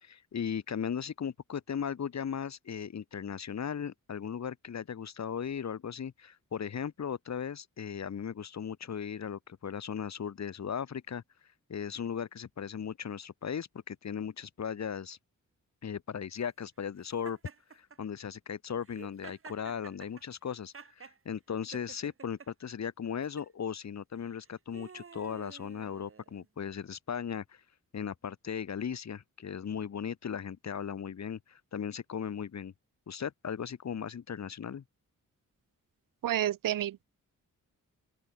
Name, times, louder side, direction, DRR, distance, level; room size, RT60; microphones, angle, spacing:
voice 1, 0.0-11.2 11.7-15.2 15.8-17.4 17.7-27.6 27.9-32.7 33.1-34.8, left 7 dB, 55° left, 2.0 m, -37 dB
Laughter, 17.2-18.0 18.8-21.2 21.7-22.5 23.2-23.5 24.3-26.5, right 5 dB, 40° right, 3.0 m, -50 dB
voice 2, 36.2-37.0, right 12 dB, 80° right, 0.7 m, -30 dB
open air
wide cardioid pair, 150°, 32 cm